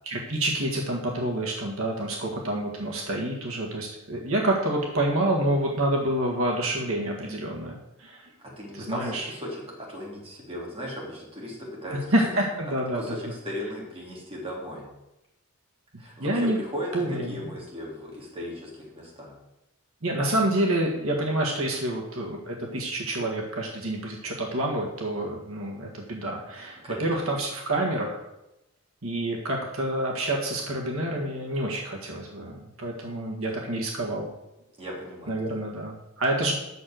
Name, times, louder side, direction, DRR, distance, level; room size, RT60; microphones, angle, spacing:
voice 1, 0.0-8.3 8.7-9.3 11.9-13.2 16.2-16.6 16.9-17.4 20.0-28.2 29.0-34.3 35.3-36.5, right 1 dB, 75° right, 0 dB, 1.8 m, -28 dB
voice 2, 8.6-12.1 12.9-14.9 16.0-19.4 26.8-27.1 33.5-33.6 34.8-35.6, equal, 25° right, -3 dB, 3.1 m, -37 dB
7.9 x 6.6 x 7.7 m, 0.92 s
head